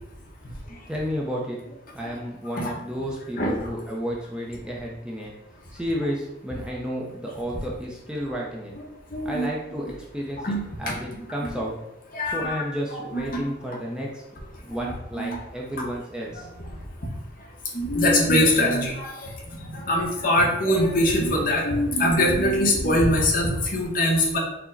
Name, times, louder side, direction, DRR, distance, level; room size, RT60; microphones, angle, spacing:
voice 1, 0.9-1.6 1.9-5.3 5.7-8.7 9.2-11.7 12.3-14.2 14.6-16.5, equal, 5° right, -3 dB, 0.5 m, -31 dB
voice 2, 9.1-9.5 10.4-11.0 11.4-11.6 12.1-12.6 13.1-13.4 14.8-15.4 17.7-19.1 19.7-24.4, left 1 dB, 50° left, 0 dB, 0.8 m, -22 dB
4.7 x 2.1 x 3.8 m, 0.89 s
head